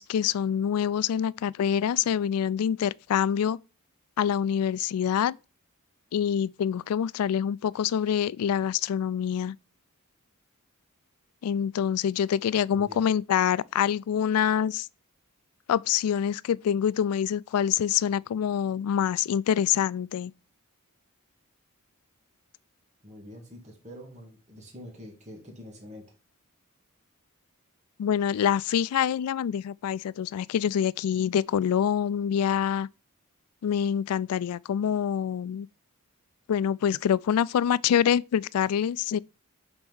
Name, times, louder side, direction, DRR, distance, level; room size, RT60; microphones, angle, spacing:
voice 1, 0.0-3.6 4.2-5.4 6.1-9.6 11.4-14.9 15.7-20.3 28.0-32.9 33.6-35.7 36.5-39.2, left 8 dB, 85° left, 0.3 m, -26 dB
voice 2, 12.7-13.1 23.0-26.1, equal, 30° right, 1.7 m, -45 dB
5.4 x 4.4 x 6.1 m
head